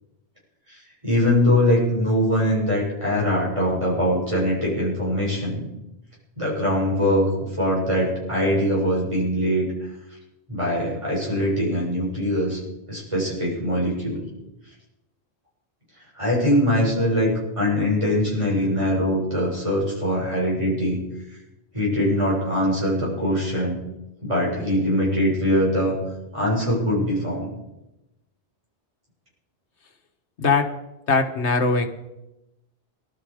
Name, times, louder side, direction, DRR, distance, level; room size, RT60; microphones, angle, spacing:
voice 1, 0.7-5.7 6.4-7.3 7.6-9.6 10.5-12.6 12.9-14.2 16.1-17.3 17.6-21.0 21.7-23.8 24.2-26.0 26.3-27.5, equal, 25° right, -5 dB, 6.7 m, -22 dB
voice 2, 31.1-31.9, left 4 dB, 75° left, 6 dB, 1.7 m, -20 dB
19.5 x 12.5 x 5.0 m, 0.93 s
omnidirectional pair, 1.2 m